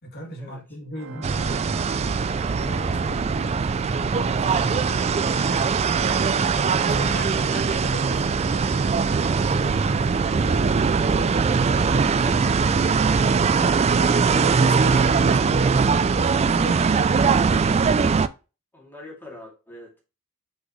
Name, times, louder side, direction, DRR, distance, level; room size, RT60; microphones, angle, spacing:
voice 1, 0.0-1.9 2.4-6.1 6.7-11.7 13.5-18.0, right 1 dB, 45° left, 2.1 m, -38 dB
Organ, 0.9-12.1, right 3 dB, 60° right, 0.9 m, -39 dB
sound 1, 1.2-18.3, right 5 dB, 30° right, 0.3 m, -21 dB
voice 2, 11.7-12.7 18.7-20.0, left 2 dB, 10° left, 2.6 m, -42 dB
6.1 x 5.2 x 3.1 m
head